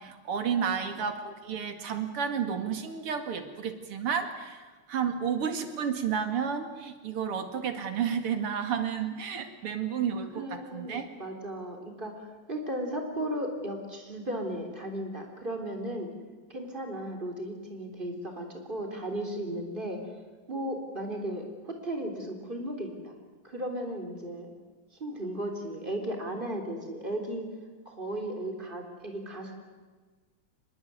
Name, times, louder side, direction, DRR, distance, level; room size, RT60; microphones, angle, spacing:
voice 1, 0.0-11.1, right 7 dB, 90° right, 7 dB, 3.0 m, -31 dB
voice 2, 10.3-16.1 16.5-20.0 20.5-24.5 25.0-27.5 27.9-29.5, right 1 dB, 20° right, 3 dB, 3.9 m, -35 dB
25.0 x 21.0 x 9.5 m, 1.4 s
omnidirectional pair, 2.4 m